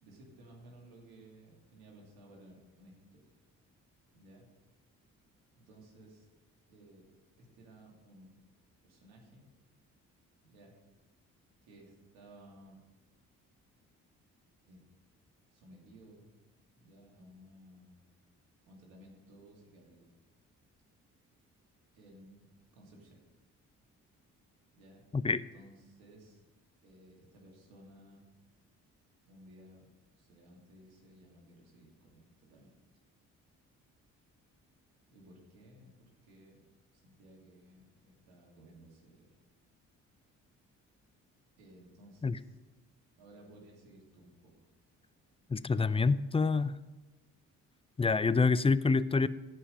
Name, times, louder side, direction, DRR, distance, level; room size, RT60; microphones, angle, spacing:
voice 1, 0.0-3.4 4.1-4.5 5.6-6.3 6.7-7.0 7.4-8.4 8.8-9.5 10.4-10.7 11.7-12.8 14.7-14.9 15.5-16.3 16.7-18.0 18.7-20.1 21.9-22.5 22.7-23.2 24.7-26.4 26.8-28.3 29.3-32.7 35.1-36.6 36.9-39.4 41.6-42.6 43.2-44.7, right 1 dB, 85° right, -1 dB, 2.8 m, -57 dB
voice 2, 45.5-46.8 48.0-49.3, left 4 dB, 15° left, 16 dB, 0.5 m, -27 dB
15.5 x 5.6 x 5.5 m, 1.2 s
hypercardioid pair, 50°, 37 cm